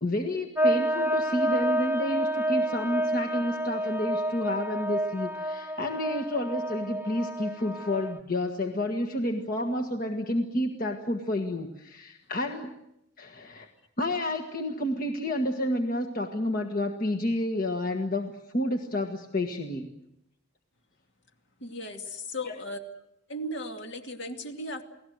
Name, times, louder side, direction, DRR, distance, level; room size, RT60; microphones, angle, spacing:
voice 1, 0.0-12.7 13.2-13.7 14.0-19.9 22.4-22.5, left 1 dB, 45° left, 4 dB, 1.6 m, -30 dB
sound 1, 0.6-8.2, right 1 dB, 10° right, 0.9 m, -29 dB
voice 2, 21.6-22.8 23.3-24.8, left 1 dB, 60° left, 4 dB, 2.5 m, -36 dB
29.0 x 19.0 x 7.9 m, 0.84 s
head